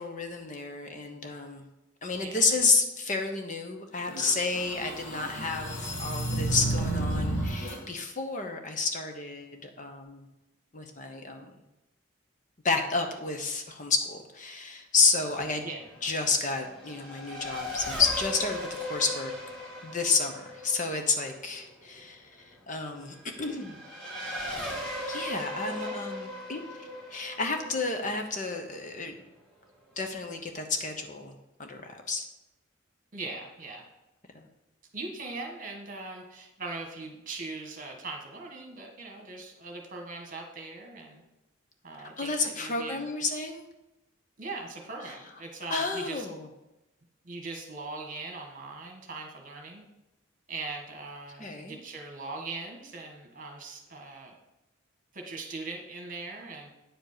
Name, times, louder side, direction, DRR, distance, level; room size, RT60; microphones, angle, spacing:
voice 1, 0.0-1.6 2.0-10.2 10.7-11.4 12.6-15.7 16.0-19.3 19.8-23.8 25.1-26.6 27.1-29.1 30.0-31.3 31.6-32.2 42.2-43.6 45.7-46.5 51.4-51.8, left 4 dB, 35° left, 5 dB, 1.0 m, -30 dB
sound 1, 4.0-7.8, right 1 dB, 60° left, 2.7 m, -31 dB
Race car auto racing / Accelerating revving vroom, 15.1-29.1, left 1 dB, 5° left, 2.2 m, -39 dB
voice 2, 25.7-26.0 33.1-33.9 34.9-41.2 41.8-43.1 44.4-46.3 47.2-49.9 50.5-54.3 55.1-56.7, right 3 dB, 40° right, 2 dB, 1.6 m, -40 dB
9.2 x 5.2 x 6.7 m, 0.96 s
head